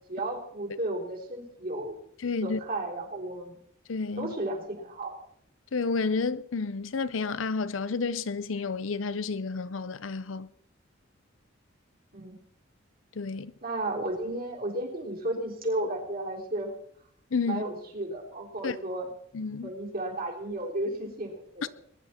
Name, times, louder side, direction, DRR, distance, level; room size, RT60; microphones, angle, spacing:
voice 1, 0.1-2.0 2.4-3.5 4.2-5.1 12.1-12.3 13.6-16.7 17.5-19.1 19.6-21.7, right 1 dB, 50° right, 3.7 m, -33 dB
voice 2, 2.2-2.6 3.9-4.3 5.7-10.5 13.2-13.5 17.3-17.6 18.6-18.8 19.3-19.7, left 4 dB, 75° left, 0.6 m, -30 dB
21.5 x 10.5 x 4.3 m
head